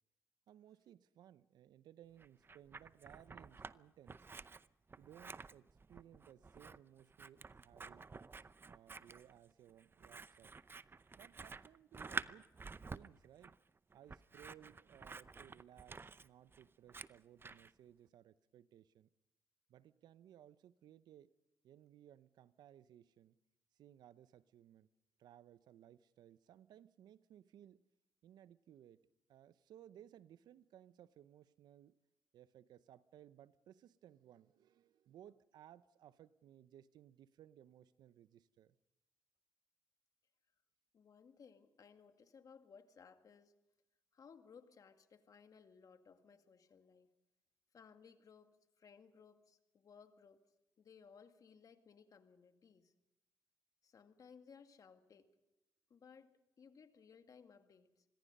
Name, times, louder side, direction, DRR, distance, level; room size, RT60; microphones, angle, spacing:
voice 1, 0.5-4.4 5.0-8.1 8.7-10.5 11.1-12.5 12.9-13.6 13.9-19.1 19.7-21.3 21.6-23.4 23.7-24.9 25.2-27.8 28.2-29.0 29.3-32.0 32.3-38.8, right 11 dB, 75° right, 0.7 m, -61 dB
Scissors, 2.2-3.7 4.1-17.7, right 4 dB, 30° right, 0.7 m, -50 dB
voice 2, 40.9-43.5 44.1-47.1 47.7-50.4 50.8-52.9 53.8-55.3 55.9-58.1, left 6 dB, 55° left, 2.0 m, -61 dB
26.0 x 21.0 x 5.4 m
supercardioid pair, 60°, 7 cm